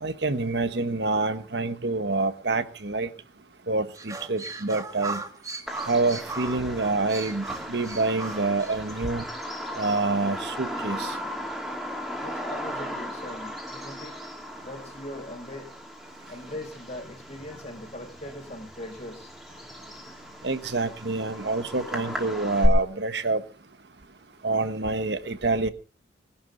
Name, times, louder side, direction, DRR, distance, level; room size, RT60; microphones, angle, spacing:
voice 1, 0.0-3.1 3.7-5.2 5.9-9.3 9.8-11.1 20.4-23.4 24.4-25.7, right 3 dB, 70° right, 1.2 m, -27 dB
sound 1, 3.9-9.0, right 3 dB, 20° right, 1.8 m, -37 dB
Bird vocalization bird call bird song, 5.7-22.7, equal, ahead, 3.0 m, -36 dB
voice 2, 12.2-14.2 14.6-15.7 16.3-19.3, left 1 dB, 40° left, 4.8 m, -40 dB
21.5 x 11.5 x 3.9 m
head